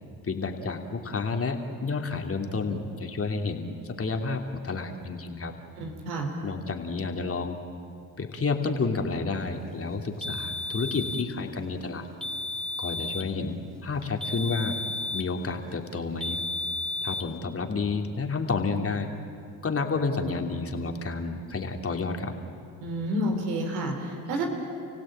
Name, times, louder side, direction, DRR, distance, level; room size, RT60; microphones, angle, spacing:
voice 1, 0.2-5.5 6.4-7.6 8.2-12.1 12.8-14.8 15.1-16.4 17.0-19.1 19.6-22.3, left 4 dB, 40° left, 4 dB, 3.0 m, -30 dB
voice 2, 5.8-6.3 22.8-24.5, right 1 dB, 85° right, 3 dB, 3.6 m, -29 dB
sound 1, 10.2-11.3 12.2-13.3 14.2-15.4 16.2-17.3, left 2 dB, ahead, 2.1 m, -33 dB
30.0 x 16.5 x 8.9 m, 2.6 s
supercardioid pair, 55°, 37 cm